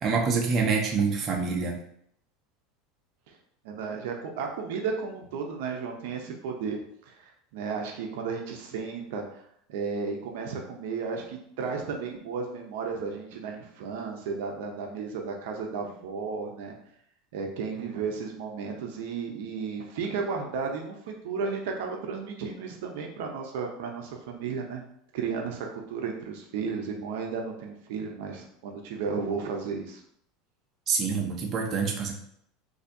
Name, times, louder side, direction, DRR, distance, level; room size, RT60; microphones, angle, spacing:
voice 1, 0.0-1.8 30.9-32.1, right 5 dB, 35° right, 1 dB, 0.7 m, -26 dB
voice 2, 3.6-6.8 7.1-9.2 9.7-16.7 17.3-24.8 25.1-30.0, right 5 dB, 75° right, 2 dB, 0.6 m, -33 dB
4.2 x 2.7 x 2.7 m, 0.69 s
supercardioid pair, 120°, 0 cm